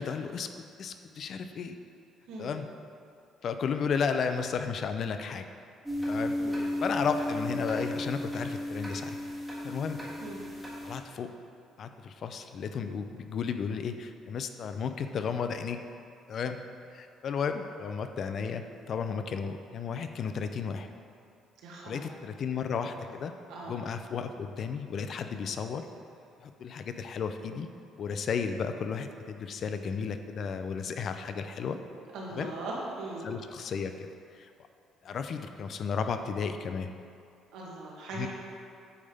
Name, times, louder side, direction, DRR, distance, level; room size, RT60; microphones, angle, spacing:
voice 1, 0.0-1.8 2.4-2.7 3.4-5.5 6.1-9.2 9.6-10.0 10.8-11.4 11.8-15.9 16.3-16.6 16.9-20.9 21.9-23.4 23.6-25.9 26.4-27.7 28.0-31.8 32.3-32.5 33.2-34.5 35.0-36.9 38.1-38.3, left 6 dB, 45° left, 8 dB, 0.4 m, -33 dB
sound 1, 5.9-11.0, left 1 dB, ahead, 1.5 m, -34 dB
voice 2, 21.6-22.0 23.5-23.7 32.1-33.2 37.5-38.3, right 2 dB, 85° right, -4 dB, 1.7 m, -39 dB
8.5 x 3.5 x 5.4 m, 2.5 s
cardioid pair, 145°, 0 cm